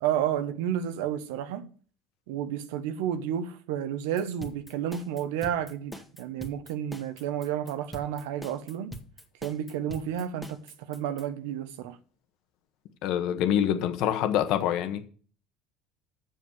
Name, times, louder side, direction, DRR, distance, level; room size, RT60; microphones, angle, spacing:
voice 1, 0.0-1.7 2.3-9.0 9.4-12.0, right 10 dB, 80° right, 1.1 m, -31 dB
sound 1, 4.2-11.2, equal, ahead, 1.9 m, -43 dB
voice 2, 13.0-15.1, left 10 dB, 70° left, 1.5 m, -26 dB
7.6 x 6.9 x 7.7 m
supercardioid pair, 90°, 0 cm